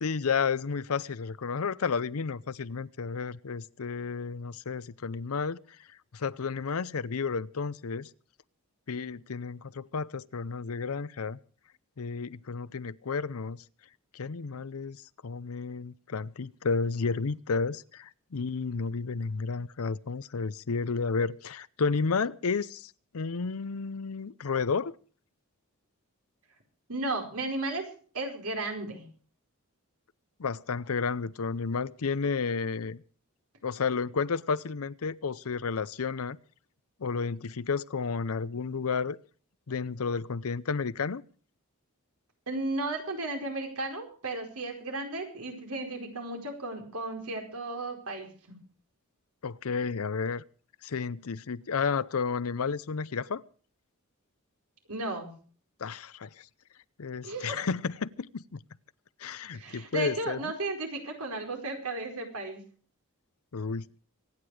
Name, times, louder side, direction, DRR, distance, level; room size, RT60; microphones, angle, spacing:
voice 1, 0.0-5.6 6.1-8.1 8.9-11.4 12.0-13.6 14.1-15.0 15.2-24.9 30.4-33.0 33.6-36.4 37.0-39.2 39.7-41.2 49.4-50.4 50.8-53.4 55.8-56.4 57.0-58.6 59.2-60.4 63.5-63.9, left 5 dB, 80° left, 0.6 m, -32 dB
voice 2, 26.9-27.8 28.1-29.0 42.5-48.3 54.9-55.3 57.2-57.6 59.5-62.6, right 2 dB, 85° right, 4.7 m, -34 dB
25.0 x 9.8 x 4.9 m
head